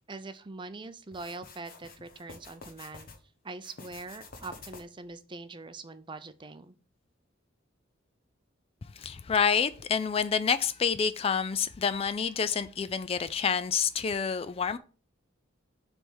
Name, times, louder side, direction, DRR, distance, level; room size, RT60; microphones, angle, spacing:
voice 1, 0.1-3.1 3.4-6.7, right 3 dB, 25° right, 0.5 m, -43 dB
sound 1, 1.1-3.2 3.6-5.1, left 3 dB, 45° left, 1.2 m, -49 dB
voice 2, 9.0-14.8, left 6 dB, 30° left, 0.3 m, -28 dB
7.2 x 3.5 x 6.1 m
head